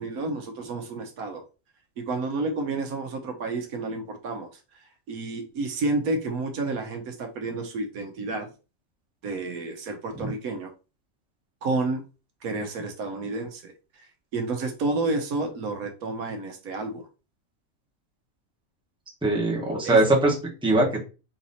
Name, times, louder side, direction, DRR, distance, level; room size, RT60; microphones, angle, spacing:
voice 1, 0.0-1.4 2.0-4.5 5.1-8.5 9.2-10.7 11.6-12.0 12.4-13.7 14.3-17.1 19.8-20.0, right 3 dB, 75° right, 4 dB, 1.3 m, -30 dB
voice 2, 19.2-21.0, right 2 dB, 5° right, -3 dB, 1.1 m, -22 dB
3.9 x 2.9 x 4.0 m, 0.32 s
omnidirectional pair, 1.5 m